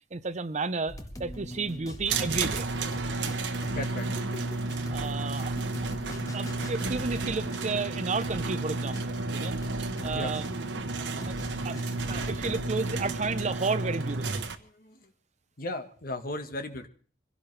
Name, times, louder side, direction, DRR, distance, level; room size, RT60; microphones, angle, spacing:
voice 1, 0.1-2.7 4.9-5.6 6.3-10.4 11.0-11.4 11.6-11.8 12.1-14.4, right 4 dB, 40° right, 0.7 m, -32 dB
sound 1, 0.9-13.4, equal, 20° left, 1.4 m, -42 dB
sound 2, 2.1-14.5, right 3 dB, 80° right, 1.2 m, -32 dB
voice 2, 3.7-4.4 10.1-10.3 14.6-15.1 15.6-16.9, left 2 dB, 55° left, 1.5 m, -36 dB
24.5 x 16.5 x 3.3 m
head